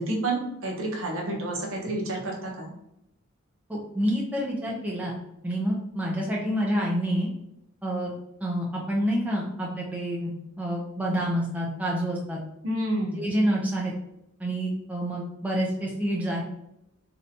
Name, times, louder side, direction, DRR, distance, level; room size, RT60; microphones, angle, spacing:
voice 1, 0.0-2.7 12.6-13.2, right 1 dB, 65° right, -1 dB, 0.8 m, -29 dB
voice 2, 3.7-5.2 5.4-7.3 7.8-8.1 8.4-10.3 10.6-12.4 13.2-13.9 14.4-16.4, equal, 5° right, -3 dB, 0.5 m, -28 dB
3.3 x 2.7 x 2.7 m, 0.81 s
head